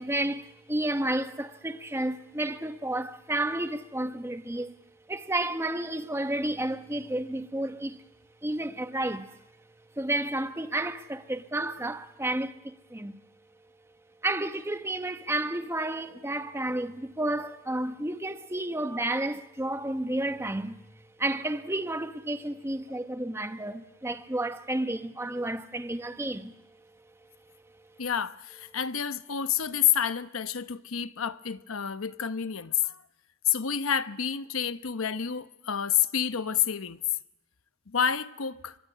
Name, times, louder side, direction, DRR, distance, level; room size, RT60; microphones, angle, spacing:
voice 1, 0.0-4.8 5.1-8.0 8.4-9.4 10.0-13.2 14.2-20.8 21.2-26.5, right 1 dB, 10° right, 0.9 m, -31 dB
voice 2, 28.0-33.0 33.4-37.0 37.9-38.8, left 8 dB, 90° left, 0.9 m, -29 dB
23.5 x 22.0 x 9.9 m
head